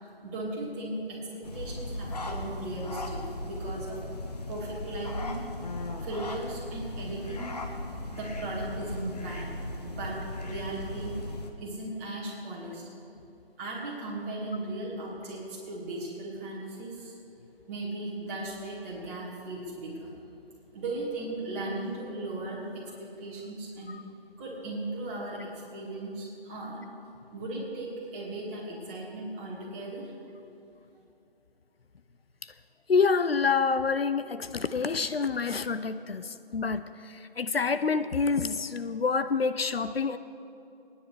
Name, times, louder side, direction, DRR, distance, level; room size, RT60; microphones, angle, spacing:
voice 1, 0.0-4.0 4.5-5.5 6.0-7.8 8.1-12.8 13.6-17.2 17.7-20.1 20.7-22.7 23.0-23.9 24.4-26.8 27.3-30.1, right 2 dB, 15° right, -6 dB, 2.1 m, -37 dB
sound 1, 1.4-11.5, left 1 dB, 40° left, 1.1 m, -37 dB
voice 2, 32.9-40.2, left 5 dB, 75° left, 12 dB, 0.6 m, -27 dB
27.5 x 10.0 x 3.3 m, 2.8 s
figure-of-eight pair, 160°, 30 cm